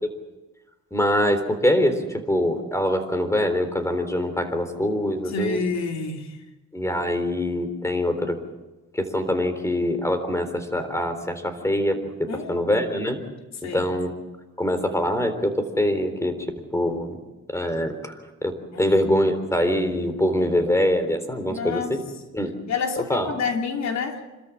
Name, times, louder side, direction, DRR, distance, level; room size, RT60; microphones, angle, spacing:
voice 1, 0.9-5.6 6.7-8.4 8.9-13.2 13.7-14.1 14.6-16.4 16.7-17.2 17.5-18.1 18.4-18.5 18.8-22.0 22.3-22.5 23.0-23.3, left 1 dB, 10° left, 9 dB, 3.8 m, -24 dB
voice 2, 5.3-6.4 12.3-12.6 13.6-13.9 18.7-19.0 21.5-22.0 22.7-24.2, left 4 dB, 60° left, 3 dB, 3.0 m, -28 dB
27.0 x 13.5 x 8.7 m, 1.1 s
cardioid pair, 90°, 30 cm